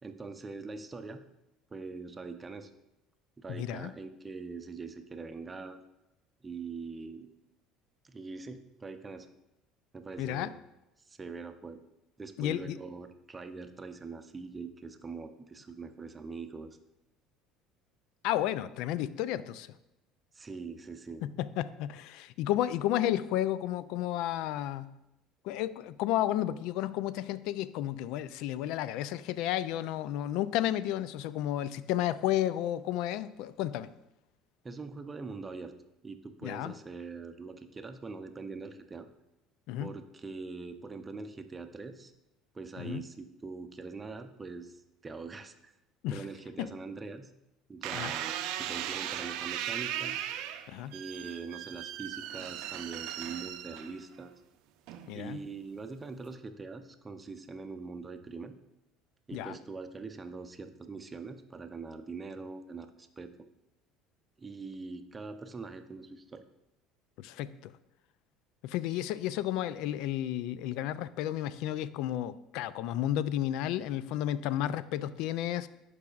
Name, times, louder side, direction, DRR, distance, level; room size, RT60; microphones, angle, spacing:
voice 1, 0.0-1.2 1.7-2.7 3.4-5.8 6.4-7.3 8.0-9.3 9.9-10.6 11.1-11.8 12.2-16.8 20.3-21.3 34.6-35.8 36.0-39.1 39.8-42.1 42.5-45.7 46.1-47.3 47.7-50.2 50.9-54.3 55.1-58.5 59.3-63.3 64.4-66.5, right 4 dB, 25° right, 8 dB, 0.6 m, -43 dB
voice 2, 3.5-3.9 10.2-10.5 12.4-12.8 18.2-19.7 21.2-24.9 25.4-33.9 36.4-36.7 39.7-39.9 42.8-43.0 46.0-46.2 46.6-46.7 47.9-48.1 50.7-50.9 55.1-55.4 59.3-59.5 67.2-67.7 68.6-75.7, left 12 dB, 70° left, 16 dB, 0.3 m, -32 dB
sound 1, 47.8-54.2 54.9-55.3, right 11 dB, 70° right, 0.5 m, -37 dB
11.5 x 4.8 x 2.4 m, 0.91 s
supercardioid pair, 80°, 0 cm